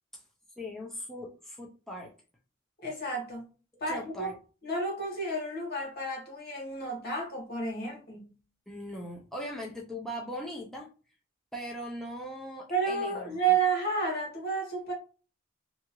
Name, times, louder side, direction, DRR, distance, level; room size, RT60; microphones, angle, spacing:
voice 1, 0.6-2.1 3.9-4.3 8.7-10.9 11.5-13.4, equal, ahead, 0.4 m, -39 dB
voice 2, 2.8-3.5 3.8-4.3 4.6-8.3 12.7-14.9, right 4 dB, 50° left, 1.3 m, -31 dB
2.8 x 2.3 x 2.9 m
head